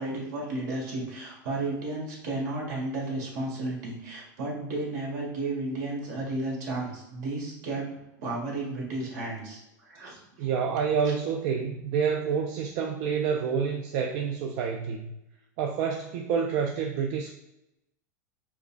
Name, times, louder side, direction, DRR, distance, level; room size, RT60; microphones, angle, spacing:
voice 1, 0.0-7.9 8.2-10.5, right 2 dB, 75° right, -3 dB, 1.5 m, -33 dB
voice 2, 10.4-15.1 15.6-17.3, right 6 dB, 55° right, 2 dB, 0.4 m, -28 dB
5.1 x 2.2 x 2.4 m, 0.91 s
supercardioid pair, 120°, 10 cm